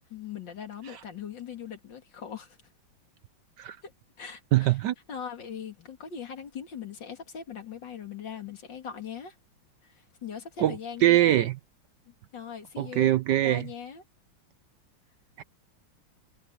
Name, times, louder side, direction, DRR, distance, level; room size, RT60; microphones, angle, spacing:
voice 1, 0.1-2.6 3.8-3.9 4.2-4.8 5.1-9.4 9.8-11.4 12.1-14.0, left 8 dB, 60° left, 2.9 m, -40 dB
voice 2, 4.5-4.9 10.6-11.6 12.8-13.7 15.4-15.5, right 14 dB, 70° right, 1.1 m, -23 dB
omnidirectional pair, 2.2 m